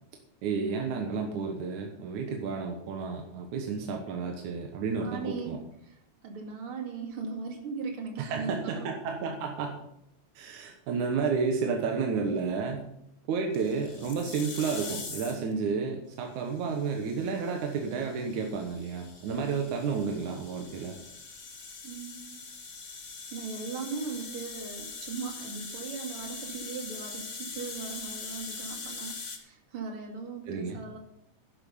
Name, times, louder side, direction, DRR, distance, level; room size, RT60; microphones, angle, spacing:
voice 1, 0.4-5.6 8.2-9.8 10.4-12.9 13.3-21.0 30.5-30.8, right 5 dB, 85° right, 2 dB, 2.7 m, -31 dB
voice 2, 5.0-5.5 5.8-6.0 6.2-8.9 21.8-22.4 23.3-31.0, right 4 dB, 50° right, 3 dB, 2.9 m, -38 dB
sound 1, 13.5-15.5 16.6-29.4, left 4 dB, 35° left, 1.3 m, -42 dB
11.0 x 11.0 x 5.5 m, 0.77 s
omnidirectional pair, 3.4 m